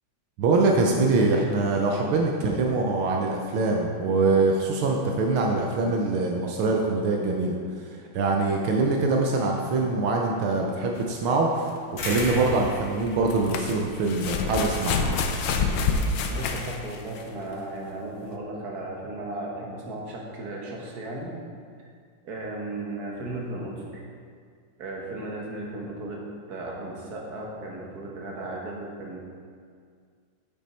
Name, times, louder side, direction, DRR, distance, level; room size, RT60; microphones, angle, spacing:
voice 1, 0.4-15.0, right 3 dB, 80° right, 0 dB, 1.6 m, -24 dB
sound 1, 11.0-11.1 13.1-17.3 18.3-18.4, left 4 dB, 75° left, 1.5 m, -27 dB
sound 2, 12.0-16.9, left 2 dB, 50° left, 1.6 m, -37 dB
voice 2, 16.3-21.3 22.2-24.0 24.8-29.2, right 2 dB, 50° right, -2 dB, 1.7 m, -35 dB
9.4 x 7.2 x 4.3 m, 2.1 s
omnidirectional pair, 2.3 m